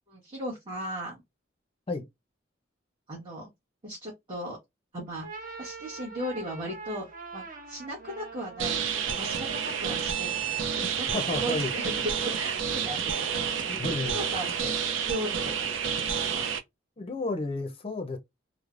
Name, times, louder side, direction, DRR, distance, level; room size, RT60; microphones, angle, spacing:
voice 1, 0.1-1.2 3.1-3.5 3.8-4.6 4.9-5.3 5.6-7.0 7.3-8.8 9.0-11.9 12.3-13.7 14.1-16.5, right 1 dB, 25° right, 1.0 m, -37 dB
sound 1, 5.1-11.1, right 4 dB, 45° right, 0.8 m, -44 dB
sound 2, 8.6-16.6, right 7 dB, 80° right, 0.5 m, -30 dB
voice 2, 11.1-11.7 13.7-14.2 17.0-18.2, left 3 dB, 30° left, 0.5 m, -32 dB
3.1 x 2.0 x 2.4 m
head